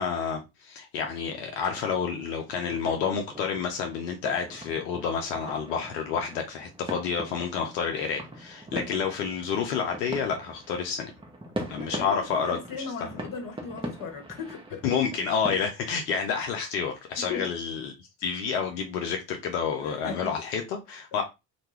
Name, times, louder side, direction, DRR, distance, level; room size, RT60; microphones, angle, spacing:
voice 1, 0.0-11.1 11.7-13.1 14.8-17.9 18.2-21.2, left 6 dB, 80° left, 0.6 m, -29 dB
sound 1, 1.0-15.7, right 1 dB, 10° right, 0.7 m, -42 dB
voice 2, 11.7-14.8 15.5-15.6 17.2-17.5 19.8-20.3, left 5 dB, 40° left, 1.0 m, -37 dB
2.2 x 2.2 x 3.1 m
hypercardioid pair, 50°, 49 cm